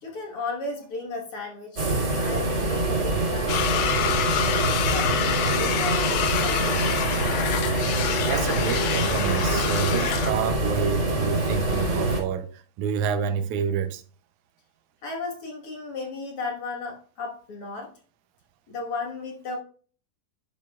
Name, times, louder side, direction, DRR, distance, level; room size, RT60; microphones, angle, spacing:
voice 1, 0.0-4.2 4.8-7.0 15.0-17.9 18.7-19.6, left 3 dB, 50° left, 1.9 m, -35 dB
sound 1, 1.8-12.2, right 2 dB, 30° right, 2.4 m, -25 dB
sound 2, 3.5-10.3, left 9 dB, 75° left, 2.2 m, -27 dB
voice 2, 8.3-14.0, right 7 dB, 75° right, 1.9 m, -28 dB
10.5 x 7.0 x 2.4 m
omnidirectional pair, 4.0 m